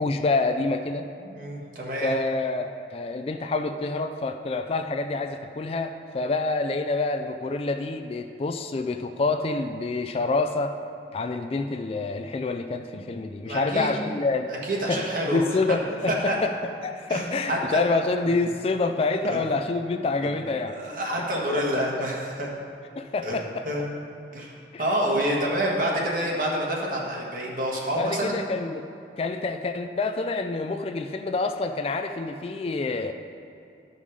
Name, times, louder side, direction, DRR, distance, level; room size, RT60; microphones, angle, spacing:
voice 1, 0.0-1.1 2.0-10.7 11.1-14.5 14.9-15.0 15.3-20.7 21.7-21.8 23.0-23.6 24.7-24.8 28.0-28.8 29.2-33.1, left 3 dB, 30° left, 6 dB, 0.3 m, -27 dB
voice 2, 1.2-2.1 12.9-13.0 13.4-13.9 14.6-15.4 15.7-15.8 16.1-16.3 17.1-17.8 19.3-19.4 20.2-20.3 20.7-22.5 23.2-23.4 23.6-23.8 24.3-24.5 24.8-28.4, right 1 dB, 50° right, -2 dB, 1.5 m, -27 dB
12.5 x 5.5 x 4.9 m, 2.5 s
head